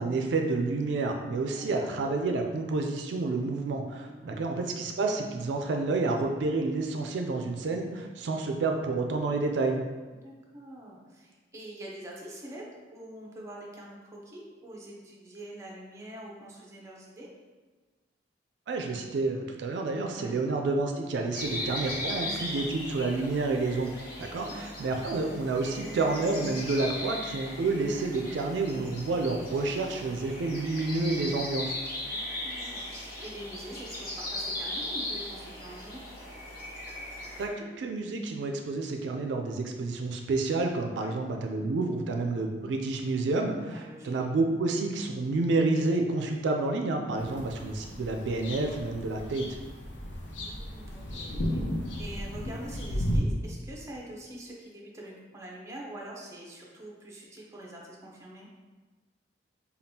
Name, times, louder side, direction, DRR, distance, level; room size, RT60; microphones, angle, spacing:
voice 1, 0.0-9.8 18.7-31.8 37.4-49.5, right 3 dB, 75° right, 3 dB, 0.3 m, -29 dB
voice 2, 1.5-1.9 4.0-4.4 10.1-17.3 20.1-20.3 22.1-22.6 24.2-24.6 32.0-36.0 40.9-41.1 43.6-44.1 47.1-47.4 50.3-51.6 52.0-58.5, right 1 dB, 15° right, -3 dB, 0.7 m, -45 dB
sound 1, 21.3-37.5, left 1 dB, 55° left, 0.9 m, -38 dB
sound 2, 47.2-53.2, equal, 85° left, 0.6 m, -35 dB
5.2 x 2.3 x 2.7 m, 1.3 s
head